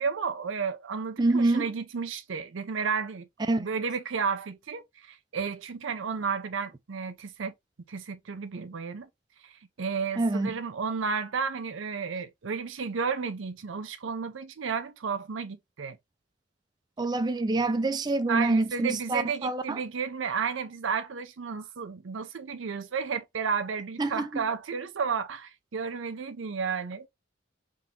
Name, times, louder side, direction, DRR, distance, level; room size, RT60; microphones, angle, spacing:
voice 1, 0.0-3.3 3.6-7.5 7.9-9.1 9.8-16.0 18.3-27.1, right 5 dB, 85° right, 0.6 m, -32 dB
voice 2, 1.2-1.7 3.5-3.7 10.2-10.6 17.0-19.8 24.0-24.4, right 2 dB, 20° right, 0.3 m, -26 dB
3.7 x 2.9 x 3.7 m
head